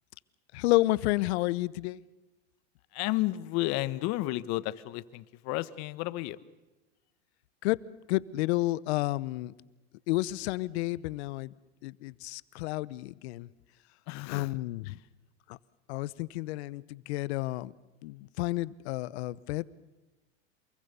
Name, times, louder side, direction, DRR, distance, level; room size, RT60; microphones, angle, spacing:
voice 1, 0.5-2.0 7.6-7.8 8.1-9.5 10.1-11.5 11.8-13.5 14.3-15.0 15.5-15.6 15.9-17.7 18.0-19.7, left 19 dB, 70° left, 19 dB, 0.9 m, -30 dB
voice 2, 2.9-6.4 14.1-14.5 14.8-15.0, left 17 dB, 50° left, 16 dB, 1.2 m, -32 dB
28.0 x 22.0 x 6.9 m, 1.1 s
supercardioid pair, 115°, 34 cm